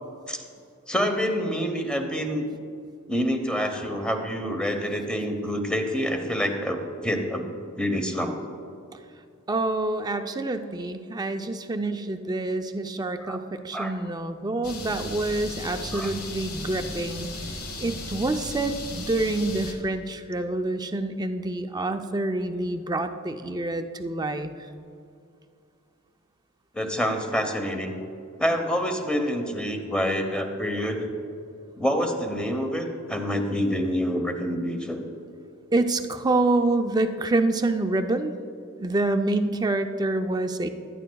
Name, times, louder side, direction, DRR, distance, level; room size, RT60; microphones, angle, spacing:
voice 1, 0.9-2.5 3.1-7.5 7.8-8.4 13.2-13.4 13.7-13.9 15.9-16.1 26.7-28.0 28.4-31.1 31.8-35.0, equal, 5° left, 4 dB, 0.9 m, -27 dB
voice 2, 9.5-17.3 17.8-24.5 35.7-38.3 38.8-40.7, right 2 dB, 20° right, 7 dB, 0.5 m, -27 dB
sound 1, 14.6-19.7, left 2 dB, 75° left, 1.4 m, -36 dB
15.5 x 11.5 x 2.3 m, 2.5 s
head